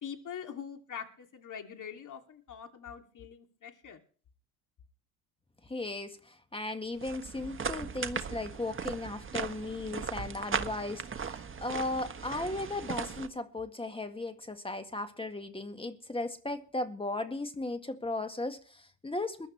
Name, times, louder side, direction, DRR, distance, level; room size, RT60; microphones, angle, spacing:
voice 1, 0.0-4.0, left 8 dB, 40° left, 2.8 m, -43 dB
voice 2, 5.6-19.5, left 2 dB, 10° left, 1.8 m, -36 dB
sound 1, 7.0-13.3, right 6 dB, 25° right, 1.4 m, -38 dB
22.0 x 11.5 x 3.3 m
hypercardioid pair, 70°, 47 cm